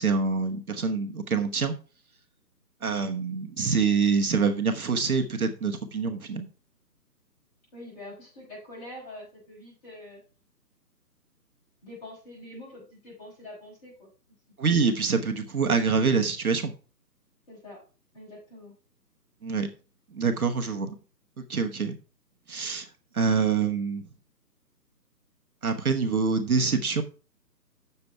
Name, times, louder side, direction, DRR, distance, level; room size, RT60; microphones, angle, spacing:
voice 1, 0.0-1.7 2.8-6.5 14.6-16.7 19.4-19.7 20.1-20.9 21.5-22.0 22.5-22.9 23.1-24.0 25.6-27.0, right 5 dB, 60° right, 6 dB, 1.3 m, -25 dB
voice 2, 7.7-10.2 11.8-14.1 17.5-17.8 18.1-18.7, left 1 dB, 25° left, -5 dB, 5.8 m, -45 dB
8.2 x 6.9 x 4.5 m, 0.36 s
hypercardioid pair, 165°, 50 cm